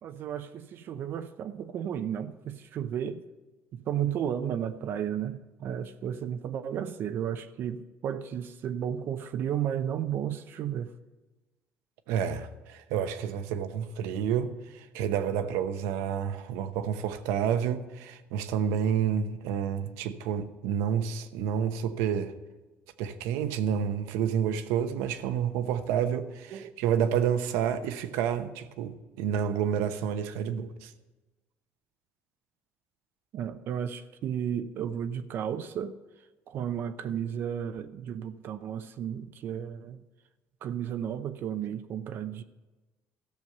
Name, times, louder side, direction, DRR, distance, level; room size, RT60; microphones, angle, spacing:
voice 1, 0.0-3.2 3.7-10.9 26.5-26.7 33.3-36.0 36.5-40.0 40.6-42.4, right 9 dB, 55° right, 0.7 m, -33 dB
voice 2, 12.1-22.3 23.0-30.9, right 8 dB, 85° right, 0.9 m, -29 dB
13.5 x 7.1 x 7.8 m
cardioid pair, 120°, 5 cm